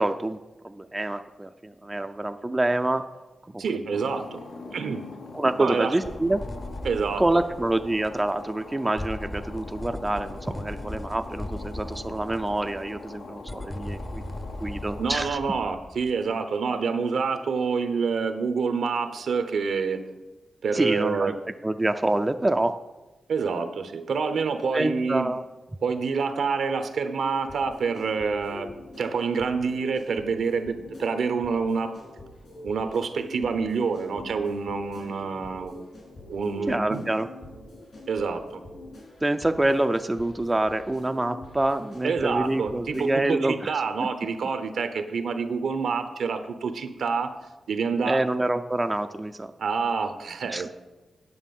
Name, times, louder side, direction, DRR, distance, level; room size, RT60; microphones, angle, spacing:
voice 1, 0.0-3.0 3.5-3.6 4.7-4.8 5.3-6.4 7.2-14.2 14.6-15.4 20.7-21.3 21.6-22.8 24.7-25.4 36.7-37.3 39.2-43.7 48.0-49.5 50.5-50.7, right 2 dB, 20° right, 8 dB, 0.4 m, -26 dB
voice 2, 3.6-4.4 4.7-5.0 5.6-6.0 6.8-7.2 15.0-20.0 20.6-21.3 23.3-25.3 25.8-28.7 29.0-31.9 32.6-35.7 36.3-37.0 38.1-38.6 42.0-47.3 47.7-48.3 49.6-50.7, right 5 dB, 75° right, 8 dB, 0.9 m, -27 dB
sound 1, 3.9-15.3, left 3 dB, 85° left, 1.2 m, -43 dB
sound 2, 6.0-8.7 9.0-16.2, left 1 dB, 15° left, 0.7 m, -38 dB
sound 3, 27.4-43.4, left 2 dB, 65° left, 3.6 m, -45 dB
9.6 x 6.5 x 5.4 m, 1.1 s
cardioid pair, 75°, 0 cm